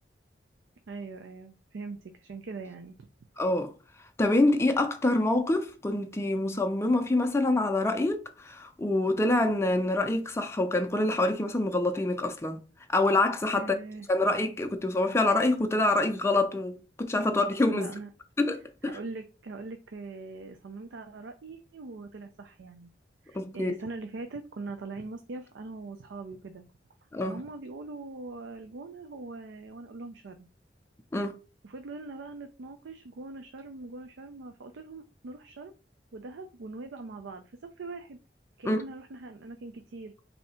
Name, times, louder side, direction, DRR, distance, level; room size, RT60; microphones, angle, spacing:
voice 1, 0.9-2.9 13.5-14.1 17.2-17.4 17.7-18.1 18.8-22.9 23.2-26.7 27.2-30.5 31.6-35.7 36.1-38.2 38.6-40.1, right 3 dB, 90° right, 0.5 m, -41 dB
voice 2, 3.4-3.7 4.2-12.6 12.9-13.7 14.1-17.9 18.4-19.0 23.3-23.7 27.1-27.4 31.1-31.4 38.6-38.8, left 2 dB, 15° left, 0.4 m, -26 dB
3.3 x 2.8 x 4.2 m
head